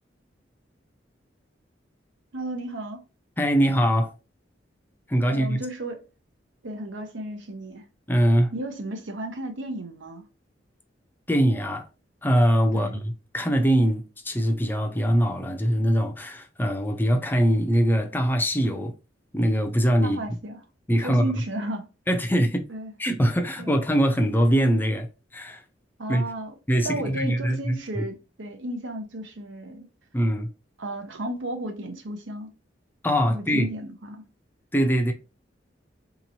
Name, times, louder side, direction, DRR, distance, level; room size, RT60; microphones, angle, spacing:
voice 1, 2.3-3.0 5.3-6.0 6.6-7.8 8.5-10.2 12.7-13.0 20.0-20.6 21.0-21.9 22.7-22.9 23.6-23.7 26.0-26.6 26.8-29.9 30.8-32.5 33.3-34.2, right 1 dB, 85° right, 0.8 m, -34 dB
voice 2, 3.4-4.1 5.1-5.7 8.1-8.5 11.3-11.9 12.2-18.9 19.3-20.2 20.9-21.3 22.1-22.7 23.0-25.1 25.3-25.6 26.1-26.3 26.7-28.0 30.1-30.5 33.0-33.7 34.7-35.1, equal, 10° left, 0.5 m, -22 dB
3.9 x 3.0 x 2.7 m
head